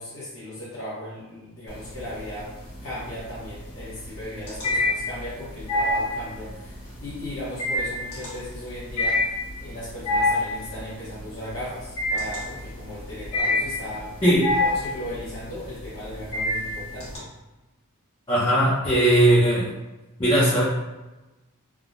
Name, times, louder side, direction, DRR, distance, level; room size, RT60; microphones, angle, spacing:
voice 1, 0.0-2.5 2.8-14.1 14.6-17.3, left 1 dB, 60° left, -11 dB, 0.8 m, -37 dB
sound 1, 1.7-2.3 2.7-17.2, left 2 dB, 85° left, 1.1 m, -26 dB
voice 2, 14.2-14.6 18.3-19.7 20.2-20.6, right 1 dB, 20° left, -9 dB, 0.6 m, -19 dB
3.4 x 2.0 x 2.4 m, 1.1 s
head